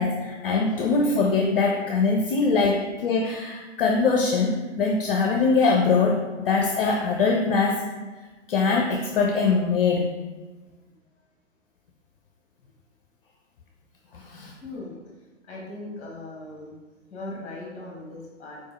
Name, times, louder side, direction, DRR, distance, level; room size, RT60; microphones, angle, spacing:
voice 1, 0.0-7.8 8.5-10.1 14.1-14.5, left 4 dB, 50° left, 1 dB, 0.5 m, -22 dB
voice 2, 14.6-15.0 15.4-16.7 17.1-18.6, left 2 dB, 15° left, -2 dB, 1.3 m, -38 dB
4.4 x 3.4 x 3.2 m, 1.3 s
figure-of-eight pair, 115°, 38 cm